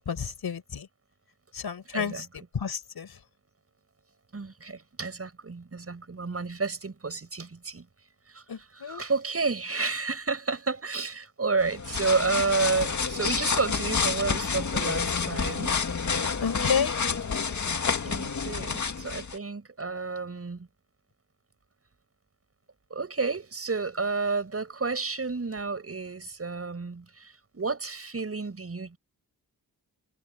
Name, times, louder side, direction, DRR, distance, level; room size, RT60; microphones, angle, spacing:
voice 1, 0.1-0.9 1.5-2.3 2.5-3.1 8.5-9.0 16.4-16.9, left 7 dB, 80° left, 5.7 m, -30 dB
voice 2, 1.9-2.3 4.3-7.9 8.3-15.8 18.0-20.7 22.9-29.0, right 4 dB, 40° right, 7.7 m, -31 dB
sound 1, 11.6-19.4, left 5 dB, 50° left, 2.1 m, -29 dB
wide cardioid pair, 135°, 37 cm